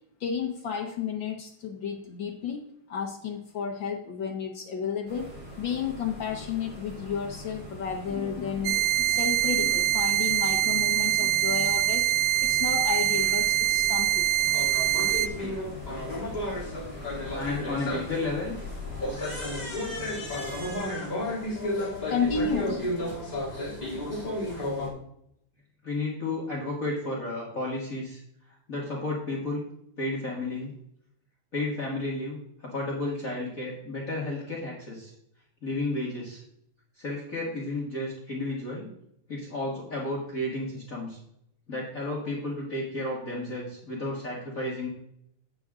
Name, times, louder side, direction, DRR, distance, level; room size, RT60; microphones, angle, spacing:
voice 1, 0.2-2.6 2.9-12.1 12.4-14.3 15.3-15.5 21.6-23.2, left 6 dB, 75° left, 2 dB, 1.0 m, -32 dB
sound 1, 5.1-20.8, left 1 dB, 5° right, 2.8 m, -42 dB
sound 2, 8.7-15.3, right 13 dB, 80° right, 1.8 m, -24 dB
sound 3, 14.4-24.9, left 1 dB, 15° left, 2.2 m, -33 dB
voice 2, 17.3-18.5 25.8-28.2 28.5-29.7 30.0-30.7 31.5-35.1 35.6-36.4 37.0-38.9 39.3-41.2 41.7-44.9, left 2 dB, 35° left, -4 dB, 1.7 m, -32 dB
8.9 x 7.6 x 3.6 m, 0.74 s
omnidirectional pair, 3.3 m